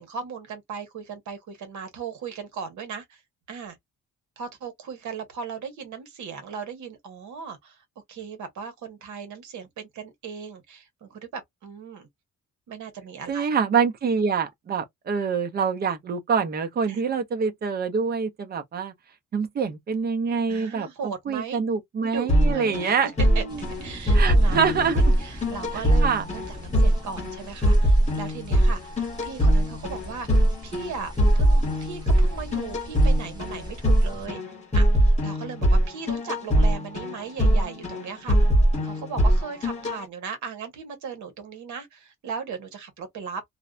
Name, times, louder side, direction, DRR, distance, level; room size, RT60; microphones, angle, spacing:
voice 1, 0.0-3.2 3.5-3.8 4.4-12.1 12.7-13.5 16.9-17.0 20.5-21.6 22.0-23.4 23.8-34.4 34.7-38.4 38.8-43.4, right 6 dB, 70° right, 1.0 m, -37 dB
voice 2, 13.3-18.9 19.3-23.6 24.1-25.1 26.0-26.3, right 6 dB, 35° right, 0.5 m, -26 dB
sound 1, 22.3-40.0, equal, 20° left, 0.9 m, -22 dB
sound 2, 23.5-34.3, equal, 15° right, 1.0 m, -40 dB
2.5 x 2.1 x 2.3 m
cardioid pair, 165°, 30 cm